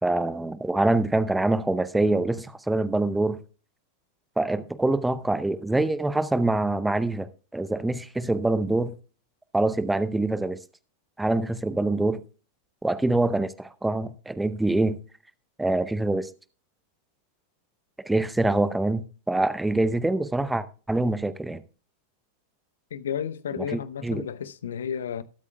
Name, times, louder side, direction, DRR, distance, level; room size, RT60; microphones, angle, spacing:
voice 1, 0.0-3.4 4.4-8.9 9.5-10.6 11.2-12.2 12.8-15.0 15.6-16.3 18.0-21.6 23.6-24.3, right 2 dB, 5° right, 0.7 m, -25 dB
voice 2, 22.9-25.2, left 8 dB, 65° left, 0.7 m, -32 dB
20.0 x 8.3 x 2.3 m
figure-of-eight pair, 90°, 0 cm